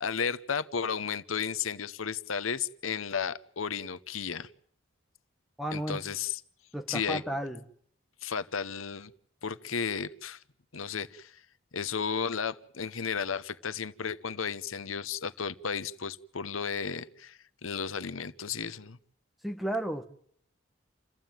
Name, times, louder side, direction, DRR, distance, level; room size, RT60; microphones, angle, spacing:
voice 1, 0.0-4.5 5.7-6.4 6.9-7.2 8.2-9.1 9.4-10.4 10.7-11.4 11.7-19.0, left 6 dB, 85° left, 13 dB, 0.9 m, -33 dB
voice 2, 5.6-6.1 6.7-7.6 19.4-20.0, right 1 dB, ahead, 5 dB, 1.6 m, -33 dB
28.5 x 15.0 x 9.1 m, 0.65 s
head